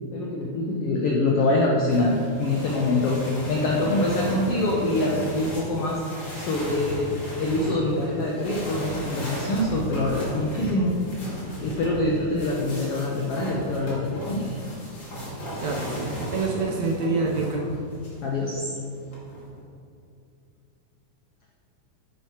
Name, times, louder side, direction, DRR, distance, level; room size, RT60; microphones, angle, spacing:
voice 1, 0.0-6.0 6.4-10.9 11.6-14.6 18.2-18.7, left 2 dB, 75° left, -2 dB, 1.3 m, -25 dB
sound 1, 1.9-18.2 19.0-19.6, equal, 40° left, 2.5 m, -35 dB
voice 2, 15.6-17.7, right 3 dB, 70° right, -1 dB, 1.8 m, -26 dB
11.5 x 9.3 x 3.1 m, 2.5 s
omnidirectional pair, 3.8 m